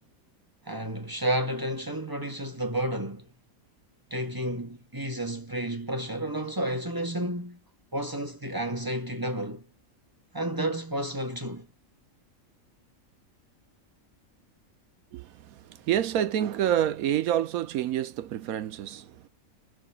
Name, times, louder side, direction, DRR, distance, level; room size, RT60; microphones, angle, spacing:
voice 1, 0.7-3.3 4.1-7.6 7.9-9.7 10.3-11.7, right 1 dB, 20° right, 0.9 m, -31 dB
voice 2, 15.1-19.2, right 11 dB, 80° right, 1.1 m, -28 dB
4.8 x 2.3 x 4.1 m
omnidirectional pair, 1.5 m